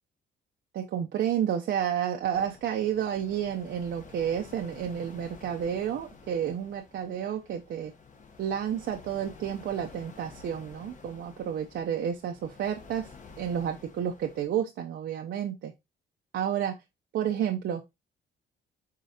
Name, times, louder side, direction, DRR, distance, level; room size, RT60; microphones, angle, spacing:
voice 1, 0.7-7.9 8.4-13.1 13.4-15.7 16.3-16.8 17.1-17.8, right 9 dB, 65° right, 0.6 m, -30 dB
sound 1, 2.3-14.5, left 5 dB, 40° left, 1.0 m, -51 dB
4.9 x 3.7 x 2.7 m
cardioid pair, 90°, 20 cm